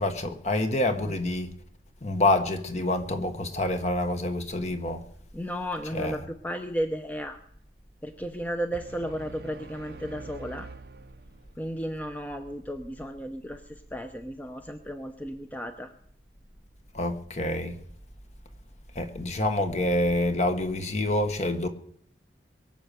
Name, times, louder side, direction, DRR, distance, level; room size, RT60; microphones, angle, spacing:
voice 1, 0.0-1.5 2.0-5.1 5.9-6.2 16.9-17.8 18.9-21.7, left 1 dB, 40° left, 1.5 m, -27 dB
voice 2, 5.3-7.4 8.0-10.7 11.6-15.9, equal, 10° left, 0.8 m, -34 dB
sound 1, 8.7-11.8, right 3 dB, 60° right, 0.7 m, -45 dB
22.5 x 7.6 x 6.9 m
head